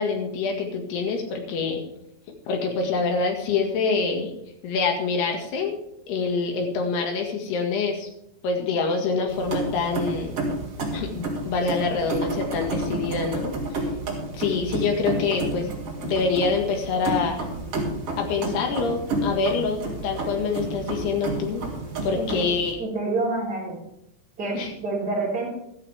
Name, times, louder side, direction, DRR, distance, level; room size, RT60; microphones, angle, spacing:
voice 1, 0.0-1.8 2.5-4.3 4.6-5.8 6.1-8.1 8.4-10.4 10.9-13.5 14.3-15.7 16.0-17.5 18.2-19.8 20.0-21.6 22.0-22.8 24.5-24.7, left 4 dB, 85° left, 3 dB, 4.0 m, -26 dB
sound 1, 9.3-22.7, right 2 dB, 40° right, 3.2 m, -30 dB
voice 2, 22.1-22.5 22.8-23.8 24.4-25.5, right 3 dB, 25° right, -5 dB, 5.7 m, -28 dB
14.0 x 13.5 x 3.5 m, 0.80 s
omnidirectional pair, 4.6 m